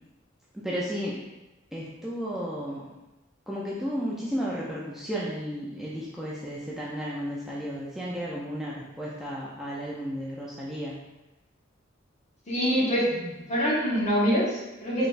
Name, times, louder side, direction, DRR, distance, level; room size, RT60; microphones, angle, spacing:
voice 1, 0.5-1.2 1.7-2.8 3.5-11.0 13.1-13.3, equal, ahead, -6 dB, 0.5 m, -33 dB
voice 2, 12.5-13.1 13.5-15.1, equal, 35° left, -7 dB, 1.5 m, -24 dB
5.8 x 3.3 x 2.6 m, 0.99 s
head